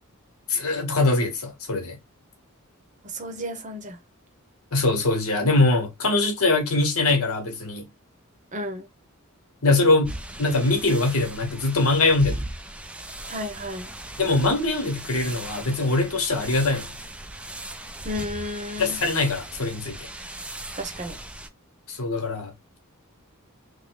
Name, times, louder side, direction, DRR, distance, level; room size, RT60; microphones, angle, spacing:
voice 1, 0.5-2.0 4.7-7.9 9.6-12.5 14.2-16.9 18.8-20.0 21.9-22.5, left 2 dB, 75° left, 1.2 m, -22 dB
voice 2, 3.1-4.0 8.5-8.9 13.3-13.9 18.0-19.0 20.8-21.2, left 1 dB, 35° right, 0.8 m, -32 dB
sound 1, 10.0-21.5, right 1 dB, 5° right, 0.3 m, -38 dB
3.5 x 2.1 x 3.8 m
head